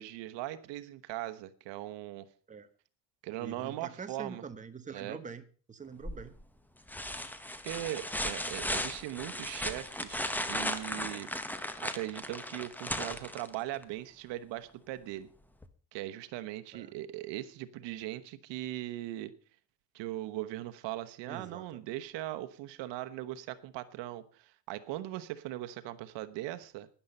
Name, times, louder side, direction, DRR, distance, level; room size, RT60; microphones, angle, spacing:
voice 1, 0.0-2.3 3.2-4.4 4.9-5.2 7.6-11.3 11.8-15.3 15.9-19.3 19.9-26.9, right 15 dB, 80° right, 11 dB, 1.1 m, -39 dB
voice 2, 3.4-5.4 5.7-6.3 16.7-16.9 21.3-21.8, right 5 dB, 15° right, 9 dB, 1.1 m, -45 dB
sound 1, 6.0-6.4 6.9-13.8 15.6-15.7, left 1 dB, 5° left, 0.9 m, -36 dB
13.0 x 10.5 x 5.4 m, 0.41 s
cardioid pair, 150°, 43 cm